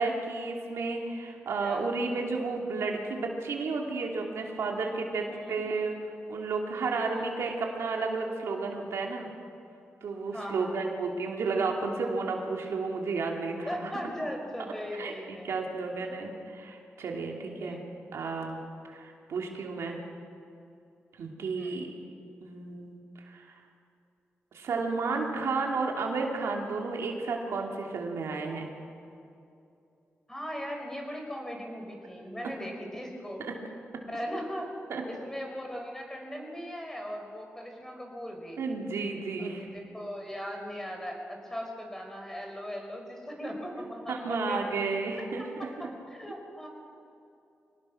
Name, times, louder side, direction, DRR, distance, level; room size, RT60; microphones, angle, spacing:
voice 1, 0.0-6.0 6.3-9.3 10.0-13.9 15.0-17.8 18.1-18.6 18.9-20.0 21.2-21.9 22.4-23.0 23.3-23.6 24.5-28.7 33.4-33.5 34.9-35.0 38.6-39.7 44.1-45.4, right 4 dB, 85° right, 1 dB, 2.9 m, -32 dB
voice 2, 5.3-5.6 7.1-7.3 10.3-10.9 13.6-15.7 17.4-17.8 21.5-21.9 30.3-33.4 34.1-34.7 35.1-38.6 39.4-44.6 45.4-45.7 46.1-46.7, equal, 10° left, 2 dB, 4.8 m, -39 dB
24.5 x 19.0 x 6.2 m, 2.7 s
cardioid pair, 90°, 5 cm